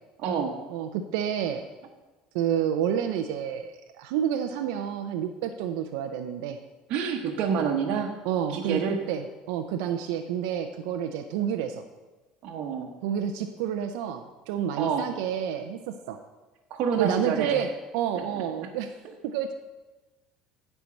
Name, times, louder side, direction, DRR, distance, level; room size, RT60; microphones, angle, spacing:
voice 1, 0.2-0.5 6.9-8.1 8.5-9.0 12.4-12.9 14.7-15.1 16.7-17.6 18.1-18.2 18.6-18.7, right 7 dB, 60° right, 0 dB, 1.1 m, -28 dB
voice 2, 0.7-1.6 2.3-6.6 8.2-11.8 13.0-16.2 17.0-17.7 17.9-18.9 19.2-19.5, right 9 dB, 80° right, 5 dB, 0.5 m, -29 dB
9.5 x 4.5 x 7.1 m, 1.2 s
supercardioid pair, 105°, 2 cm